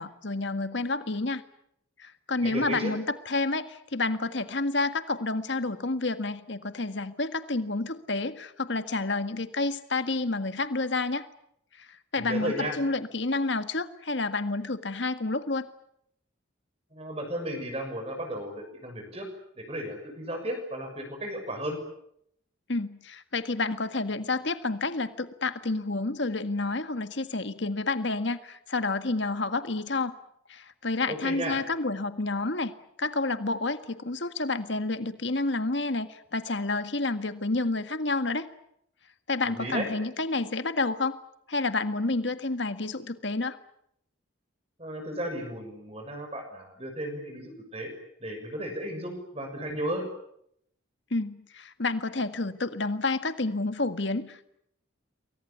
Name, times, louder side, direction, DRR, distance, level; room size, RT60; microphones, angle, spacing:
voice 1, 0.0-1.4 2.0-11.3 11.8-15.7 22.7-30.2 30.5-32.7 33.0-38.5 39.3-41.2 41.5-43.6 51.1-54.4, left 3 dB, 65° left, 10 dB, 1.8 m, -29 dB
voice 2, 2.4-2.9 12.2-12.8 16.9-19.3 19.6-21.8 31.1-31.6 39.5-39.9 44.8-47.9 48.2-50.0, equal, 30° right, 4 dB, 6.5 m, -34 dB
28.0 x 23.0 x 8.5 m, 0.74 s
head